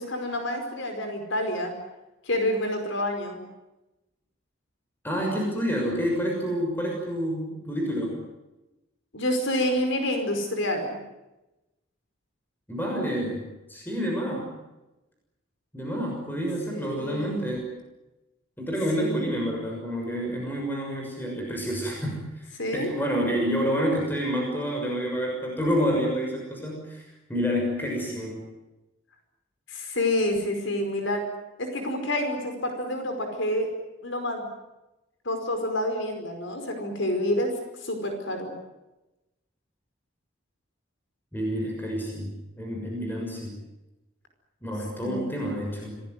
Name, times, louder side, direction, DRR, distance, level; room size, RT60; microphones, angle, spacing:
voice 1, 0.0-1.7 2.2-3.4 9.1-11.0 16.7-17.4 19.0-19.3 22.6-22.9 29.7-31.2 31.6-33.7 34.0-34.5 35.2-37.5 37.8-38.5 45.0-45.5, left 1 dB, 70° left, 5 dB, 5.0 m, -28 dB
voice 2, 5.0-8.2 12.7-14.5 15.7-17.6 18.6-28.4 41.3-43.5 44.6-45.9, equal, 10° left, 0 dB, 6.5 m, -28 dB
27.5 x 19.5 x 9.5 m, 0.99 s
head